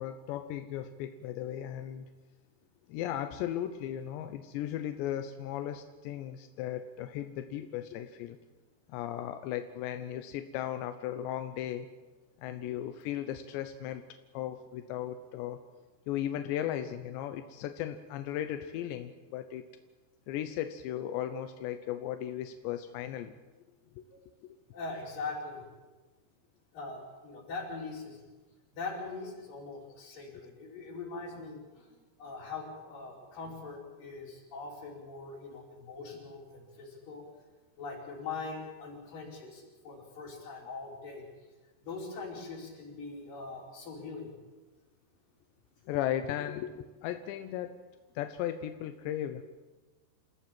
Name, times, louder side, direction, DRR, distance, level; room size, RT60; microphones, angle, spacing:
voice 1, 0.0-2.1 2.9-8.4 8.9-11.9 12.4-14.0 14.3-15.6 16.1-19.7 20.3-23.3 24.0-24.1 45.9-47.8 48.2-49.4, left 11 dB, 90° left, 8 dB, 3.1 m, -36 dB
voice 2, 24.7-25.6 26.7-28.2 28.7-31.9 32.2-37.2 37.8-41.2 41.8-44.3, left 3 dB, 50° left, -3 dB, 6.8 m, -42 dB
28.0 x 15.0 x 7.7 m, 1.2 s
omnidirectional pair, 4.9 m